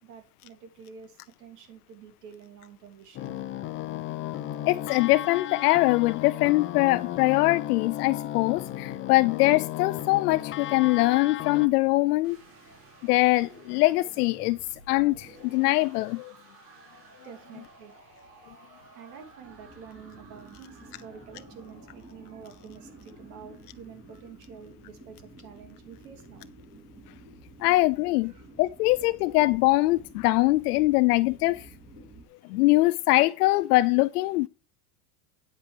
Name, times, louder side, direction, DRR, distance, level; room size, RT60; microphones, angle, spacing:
voice 1, 0.0-3.4 17.2-17.9 18.9-26.5 28.3-28.5 32.4-32.5, right 7 dB, 80° right, 2.9 m, -48 dB
sound 1, 3.1-11.7, left 12 dB, 25° left, 0.7 m, -35 dB
voice 2, 4.7-12.4 13.0-14.6 14.9-16.3 27.6-28.3 28.6-31.7 32.5-34.5, left 20 dB, 75° left, 0.5 m, -23 dB
sound 2, 12.2-24.3, right 3 dB, 60° right, 5.0 m, -54 dB
sound 3, 19.4-32.3, right 1 dB, 20° right, 3.2 m, -51 dB
8.8 x 8.0 x 3.3 m
supercardioid pair, 140°, 47 cm